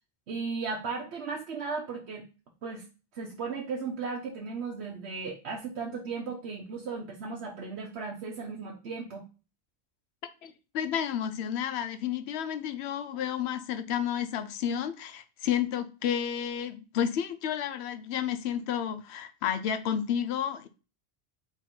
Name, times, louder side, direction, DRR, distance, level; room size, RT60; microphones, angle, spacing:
voice 1, 0.3-2.2 2.6-2.8 3.1-9.2, right 4 dB, 80° right, 1.0 m, -36 dB
voice 2, 10.4-20.7, left 9 dB, 80° left, 0.8 m, -31 dB
3.8 x 3.0 x 4.3 m
omnidirectional pair, 1.1 m